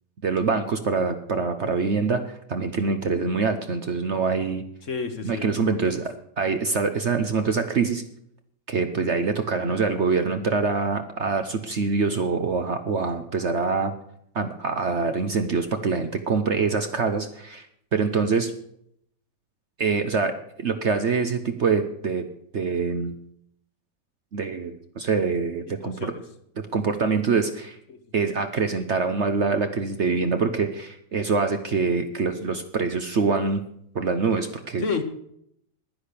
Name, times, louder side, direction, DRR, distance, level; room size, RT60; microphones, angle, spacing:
voice 1, 0.2-4.6 5.2-8.0 8.7-13.9 14.3-17.7 17.9-18.5 19.8-22.3 22.5-23.2 24.3-26.1 26.7-27.8 28.1-33.6 33.9-34.8, right 4 dB, 50° right, 8 dB, 1.0 m, -25 dB
voice 2, 4.8-6.0 25.7-26.2 27.9-28.0 34.8-35.0, left 5 dB, 50° left, 8 dB, 1.4 m, -31 dB
10.5 x 10.5 x 6.8 m, 0.72 s
omnidirectional pair, 1.8 m